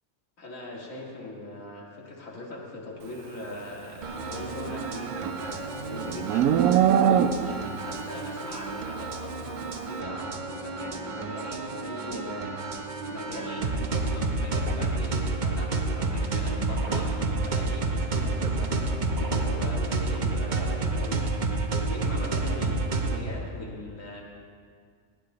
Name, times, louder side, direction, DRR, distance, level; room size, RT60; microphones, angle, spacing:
voice 1, 0.4-24.2, left 2 dB, 65° left, -3 dB, 2.4 m, -41 dB
sound 1, 4.0-23.2, right 3 dB, 40° right, 0.8 m, -30 dB
Livestock farm animals working animals, 4.5-7.7, right 9 dB, 85° right, 1.0 m, -23 dB
17.5 x 9.9 x 3.9 m, 2.1 s
omnidirectional pair, 1.5 m